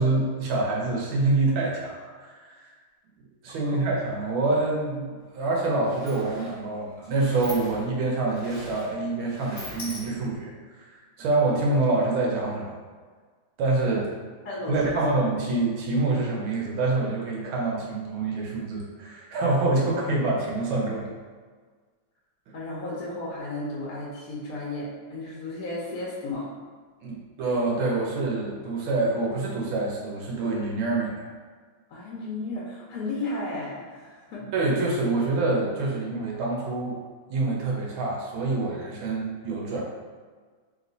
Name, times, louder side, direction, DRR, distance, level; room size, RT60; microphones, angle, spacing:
voice 1, 0.0-2.7 3.4-12.8 13.6-14.1 14.7-21.1 27.0-31.3 34.5-37.0 37.3-39.8, right 2 dB, 80° right, -2 dB, 1.6 m, -26 dB
voice 2, 3.6-4.0 14.4-15.0 22.5-26.4 31.9-34.5, left 2 dB, 60° left, -5 dB, 1.0 m, -34 dB
Sliding door, 5.2-5.3 5.6-10.5, left 1 dB, 35° left, 0.9 m, -42 dB
3.4 x 3.0 x 3.9 m, 1.5 s
omnidirectional pair, 2.2 m